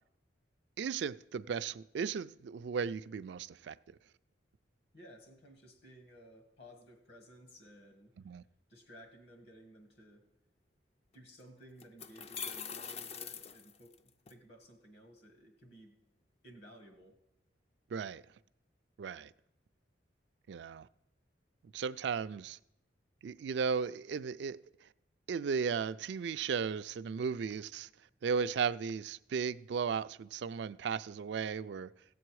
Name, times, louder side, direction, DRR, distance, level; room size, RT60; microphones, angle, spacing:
voice 1, 0.8-3.8 8.3-8.4 17.9-18.2 19.0-19.3 20.5-20.9 21.7-22.6 23.2-24.6 25.3-27.9 28.2-31.9, right 6 dB, 65° right, 0.3 m, -35 dB
voice 2, 4.9-8.1 8.7-10.2 11.1-14.0 14.3-16.0 16.4-17.2, equal, 60° left, 1.6 m, -56 dB
sound 1, 11.1-11.2 11.8-14.3, left 7 dB, 35° left, 0.4 m, -43 dB
16.0 x 7.7 x 4.7 m
head